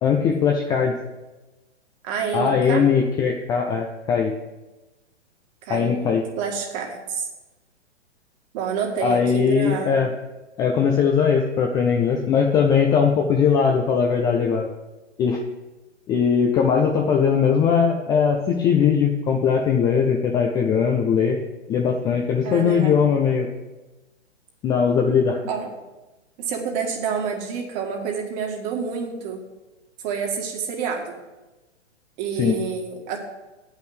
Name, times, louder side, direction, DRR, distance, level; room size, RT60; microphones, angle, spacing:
voice 1, 0.0-0.9 2.3-4.3 5.7-6.2 9.0-10.1 10.6-14.7 15.2-15.4 16.1-21.4 21.7-23.5 24.6-25.4 32.4-32.6, left 6 dB, 10° left, 1 dB, 0.4 m, -20 dB
voice 2, 2.0-2.8 5.6-7.3 8.5-10.0 22.4-23.0 25.5-25.7 26.4-29.4 30.0-31.1 32.2-33.2, right 6 dB, 35° right, 2 dB, 2.0 m, -28 dB
8.6 x 5.7 x 8.1 m, 1.1 s
hypercardioid pair, 125°, 35 cm